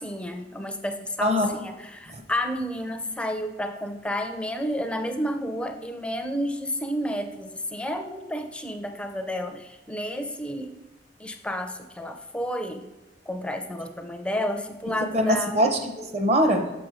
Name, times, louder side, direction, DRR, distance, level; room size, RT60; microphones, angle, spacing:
voice 1, 0.0-10.8 11.2-12.9 13.3-15.7, equal, 5° left, 6 dB, 0.4 m, -31 dB
voice 2, 1.2-1.6 2.1-2.2 15.1-16.7, equal, 35° right, 5 dB, 0.8 m, -23 dB
6.1 x 5.8 x 4.8 m, 1.0 s
head